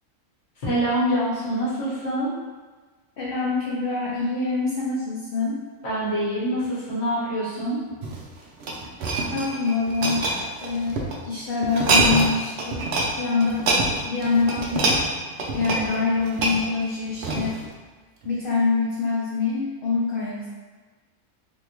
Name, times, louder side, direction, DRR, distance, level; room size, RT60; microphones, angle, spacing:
voice 1, 0.6-2.3 5.8-7.8, equal, 50° left, -8 dB, 1.2 m, -25 dB
voice 2, 3.2-5.6 9.3-12.9 13.2-15.0 15.5-17.6 18.2-20.5, left 4 dB, 70° left, -5 dB, 0.5 m, -25 dB
sound 1, 7.9-11.2 11.6-12.3 12.6-13.1 13.4-17.7 18.2-18.4, right 2 dB, 65° right, 0.7 m, -25 dB
3.5 x 2.6 x 2.9 m, 1.4 s
omnidirectional pair, 1.5 m